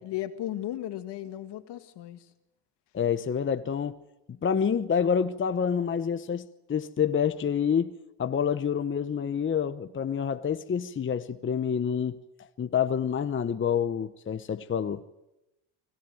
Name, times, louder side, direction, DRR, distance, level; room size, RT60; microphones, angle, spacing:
voice 1, 0.0-2.3, left 13 dB, 70° left, 2.0 m, -35 dB
voice 2, 2.9-4.0 4.4-12.2 12.6-15.0, left 7 dB, 30° left, 0.9 m, -28 dB
25.0 x 17.0 x 9.2 m
cardioid pair, 100°, 43 cm